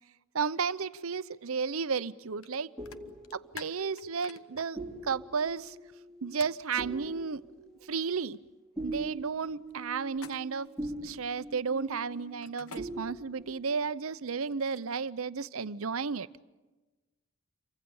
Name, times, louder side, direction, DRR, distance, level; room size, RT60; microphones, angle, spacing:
voice 1, 0.3-2.7 3.0-5.8 6.2-7.4 7.8-8.4 8.8-10.7 11.0-16.3, right 5 dB, 75° right, 0.7 m, -33 dB
sound 1, 2.4-2.6 2.9-4.6 6.4-6.6 10.1-10.7 12.4-12.8 14.2-15.1, left 6 dB, 75° left, 1.2 m, -48 dB
sound 2, 2.4-12.5 12.8-13.6, right 2 dB, ahead, 5.1 m, -43 dB
28.5 x 24.5 x 7.1 m
head